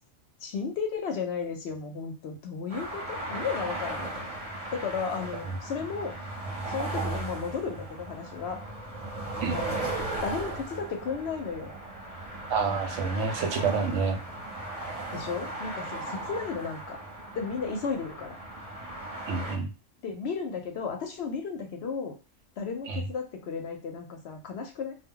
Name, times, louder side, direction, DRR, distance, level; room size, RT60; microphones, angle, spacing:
voice 1, 0.4-4.3 4.7-6.2 6.7-8.6 9.5-9.9 10.2-11.7 15.1-17.0 17.3-18.4 20.0-22.2 22.6-24.9, left 5 dB, 65° left, 3 dB, 0.7 m, -34 dB
sound 1, 2.7-19.6, right 2 dB, 35° right, 0.8 m, -37 dB
voice 2, 12.5-14.2 19.3-19.7 22.9-23.0, right 5 dB, 70° right, 4 dB, 0.9 m, -28 dB
2.2 x 2.1 x 3.6 m, 0.32 s
omnidirectional pair, 1.3 m